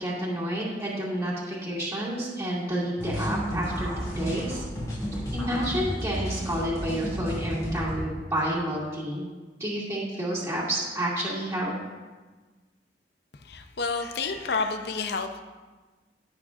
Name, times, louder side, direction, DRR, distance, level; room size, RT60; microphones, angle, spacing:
voice 1, 0.0-4.6 5.1-9.2 9.6-11.7, right 1 dB, 15° right, -7 dB, 2.3 m, -30 dB
sound 1, 3.0-8.0, equal, 20° left, 2.5 m, -32 dB
voice 2, 13.4-15.4, left 4 dB, 65° left, 7 dB, 0.6 m, -29 dB
16.5 x 6.2 x 2.5 m, 1.3 s
head